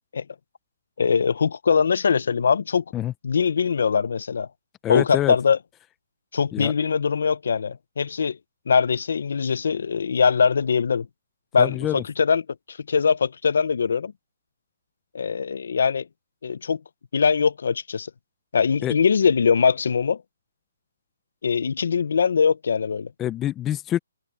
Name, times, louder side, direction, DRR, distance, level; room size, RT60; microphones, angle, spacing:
voice 1, 1.0-2.8 3.2-4.5 4.9-5.6 6.3-8.4 8.7-11.1 11.5-12.4 12.7-14.1 15.1-16.1 16.4-16.8 17.1-18.1 18.5-20.2 21.4-23.1, left 6 dB, 55° left, 0.6 m, -22 dB
voice 2, 4.8-5.3 6.5-6.7 11.6-12.0 18.8-18.9 23.2-24.0, left 12 dB, 10° left, 0.4 m, -26 dB
hypercardioid pair, 175°, 0 cm